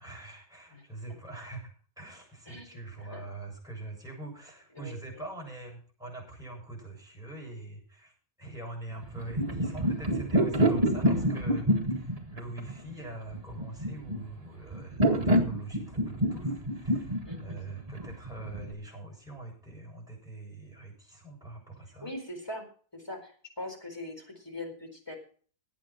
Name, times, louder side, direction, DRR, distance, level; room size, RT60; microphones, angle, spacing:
voice 1, 0.0-1.7 2.0-22.1, right 2 dB, ahead, -2 dB, 7.4 m, -43 dB
sound 1, 9.0-18.7, equal, 25° right, 2.0 m, -27 dB
voice 2, 17.2-17.6 22.0-22.7 22.9-25.2, left 1 dB, 15° left, 2 dB, 4.4 m, -41 dB
19.0 x 8.8 x 4.5 m, 0.43 s
omnidirectional pair, 1.5 m